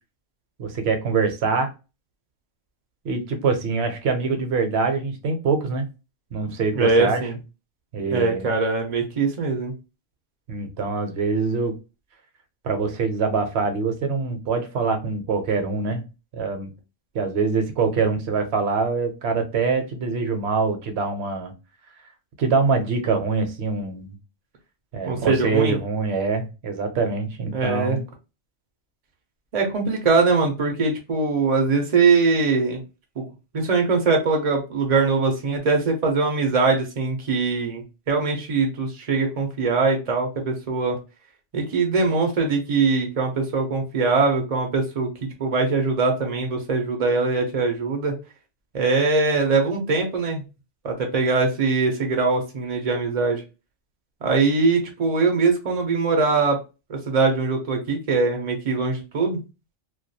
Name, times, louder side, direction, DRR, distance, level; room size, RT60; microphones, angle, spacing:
voice 1, 0.6-1.7 3.0-5.9 6.3-7.2 7.9-8.5 10.5-11.8 12.6-16.0 16.3-16.7 17.1-21.5 22.4-24.1 24.9-28.0, right 4 dB, 65° right, 6 dB, 0.8 m, -24 dB
voice 2, 6.7-7.3 8.1-9.7 25.1-25.8 27.5-28.0 29.5-32.8 33.2-33.3 33.5-41.0 41.5-45.1 45.4-48.1 48.7-50.4 50.8-53.4 54.2-56.6 56.9-59.4, right 4 dB, 45° right, 2 dB, 0.5 m, -22 dB
2.3 x 2.2 x 2.6 m, 0.29 s
omnidirectional pair, 1.2 m